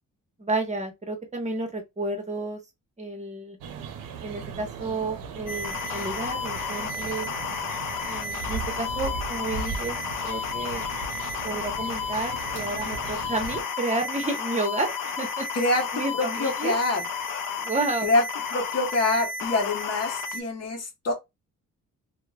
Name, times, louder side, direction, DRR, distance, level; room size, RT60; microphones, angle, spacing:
voice 1, 0.4-2.6 3.0-3.6 4.2-7.3 8.1-10.9 11.4-15.5 15.9-16.8 17.6-18.1, right 2 dB, 20° right, 0.8 m, -31 dB
sound 1, 3.6-13.6, right 6 dB, 85° right, 0.6 m, -37 dB
sound 2, 5.5-20.4, left 5 dB, 75° left, 0.5 m, -32 dB
voice 2, 15.5-15.9 16.2-17.0 18.0-18.2 18.5-21.1, left 2 dB, 50° left, 0.9 m, -25 dB
2.9 x 2.1 x 2.2 m
cardioid pair, 75°, 33 cm